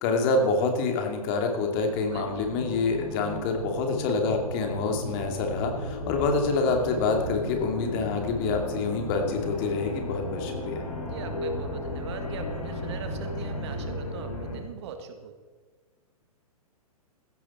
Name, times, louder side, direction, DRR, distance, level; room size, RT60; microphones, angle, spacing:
voice 1, 0.0-10.8, left 3 dB, 40° left, 3 dB, 2.6 m, -27 dB
sound 1, 1.1-14.6, left 1 dB, 75° left, 5.1 m, -35 dB
voice 2, 2.1-2.5 11.0-15.4, right 6 dB, 45° right, 7 dB, 1.8 m, -40 dB
16.0 x 12.5 x 4.4 m, 1.4 s
figure-of-eight pair, 115°, 19 cm